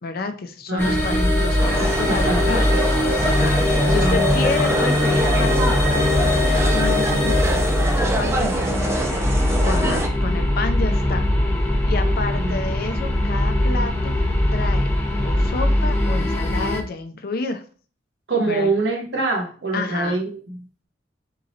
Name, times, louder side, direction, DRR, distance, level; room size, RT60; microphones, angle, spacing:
voice 1, 0.0-2.9 3.2-9.2 9.6-11.3 11.9-14.2 14.5-14.9 15.2-17.6 18.4-18.7 19.7-20.2, left 3 dB, 60° left, 7 dB, 0.5 m, -30 dB
voice 2, 0.7-1.3 2.1-2.8 3.8-4.8 12.3-12.6 18.3-20.6, right 2 dB, 80° right, 0 dB, 1.1 m, -25 dB
sound 1, 0.8-16.8, left 1 dB, 15° left, 0.9 m, -21 dB
sound 2, 1.6-10.1, right 2 dB, 15° right, 0.5 m, -25 dB
4.1 x 3.7 x 2.8 m, 0.41 s
head